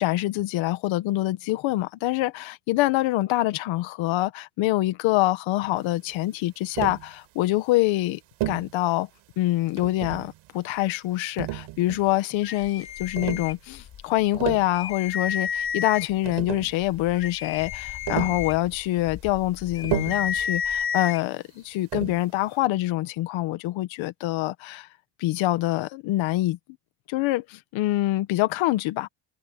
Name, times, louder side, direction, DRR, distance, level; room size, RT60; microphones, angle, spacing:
voice 1, 0.0-8.2 8.5-9.1 9.4-24.9 25.2-26.6 27.1-29.1, left 16 dB, 80° left, 1.5 m, -25 dB
Tap, 6.7-7.1 8.4-8.7 9.8-10.3 11.4-12.1 13.1-13.5 14.2-14.7 15.9-16.0 16.2-16.8 18.1-18.5 19.8-20.3 21.9-22.2, right 16 dB, 80° right, 4.6 m, -31 dB
sound 1, 12.4-14.0 14.4-14.5 14.7-16.3 16.8-21.2, left 8 dB, 55° left, 6.8 m, -31 dB
cardioid pair, 90°, 46 cm